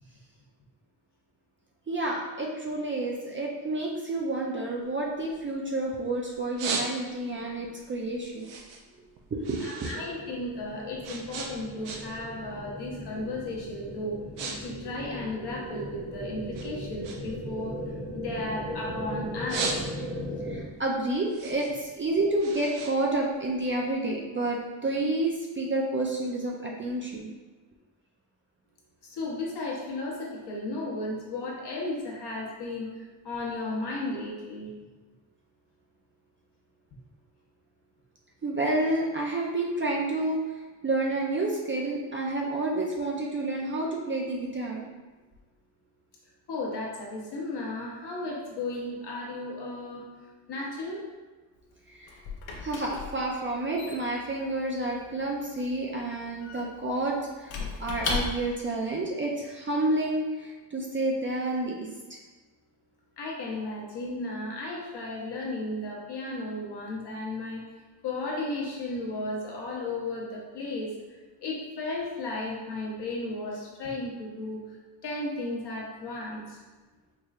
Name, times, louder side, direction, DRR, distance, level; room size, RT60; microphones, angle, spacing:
voice 1, 1.9-8.5 9.3-10.0 20.5-27.3 38.4-44.9 51.9-52.1 52.6-61.8, right 2 dB, 25° right, -2 dB, 0.5 m, -29 dB
sound 1, 4.8-5.9 6.3-7.4 7.8-10.0 10.3-12.3 12.6-12.9 13.5-13.7 14.0-14.6 14.8-16.1 16.5-18.9 19.2-20.3 20.7-23.8, right 4 dB, 65° right, 0.7 m, -37 dB
voice 2, 9.6-14.2 14.6-17.8 18.1-19.8 29.0-34.7 46.5-51.0 63.2-67.6 68.0-71.0 71.4-74.8 75.0-76.6, left 2 dB, 55° left, -3 dB, 1.1 m, -34 dB
sound 2, 9.8-20.6, left 1 dB, 15° left, 0.7 m, -38 dB
Squeak / Wood, 51.5-58.7, left 4 dB, 75° left, 0.8 m, -37 dB
4.6 x 3.1 x 2.4 m, 1.3 s
cardioid pair, 105°, 47 cm